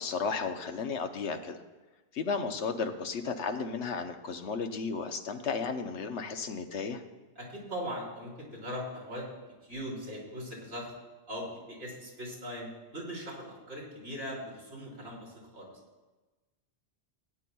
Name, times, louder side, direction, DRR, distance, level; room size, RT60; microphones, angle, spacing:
voice 1, 0.0-1.6 2.1-7.0, left 5 dB, 80° left, 6 dB, 1.1 m, -34 dB
voice 2, 7.4-9.3 9.6-10.9 11.3-15.7, equal, 85° right, -3 dB, 3.6 m, -40 dB
17.5 x 10.0 x 2.3 m, 1.2 s
omnidirectional pair, 1.2 m